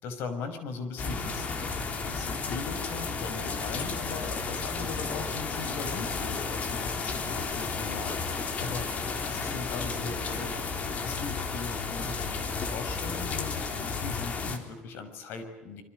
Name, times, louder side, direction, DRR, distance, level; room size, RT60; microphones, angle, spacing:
voice 1, 0.0-1.5 2.0-8.2 8.6-8.9 9.3-10.5 11.0-15.8, left 4 dB, 75° left, 9 dB, 6.3 m, -39 dB
sound 1, 1.0-14.6, left 4 dB, 40° left, 3.8 m, -33 dB
28.5 x 25.0 x 8.0 m, 1.0 s
cardioid pair, 165°, 4 cm